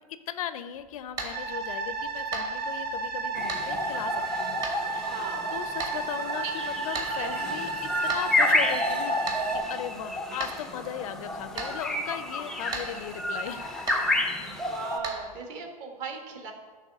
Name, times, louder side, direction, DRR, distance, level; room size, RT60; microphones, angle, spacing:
voice 1, 0.0-5.2 5.5-13.9, left 10 dB, 55° left, 12 dB, 0.5 m, -38 dB
sound 1, 0.8-15.4, right 3 dB, 20° right, 1.1 m, -41 dB
sound 2, 1.3-9.6, right 3 dB, 75° right, 1.5 m, -33 dB
sound 3, 3.3-15.0, left 1 dB, ahead, 0.5 m, -30 dB
voice 2, 5.1-5.5 7.2-7.5 14.5-16.5, right 4 dB, 40° right, 3 dB, 1.4 m, -38 dB
9.6 x 3.4 x 6.4 m, 1.5 s
hypercardioid pair, 135°, 21 cm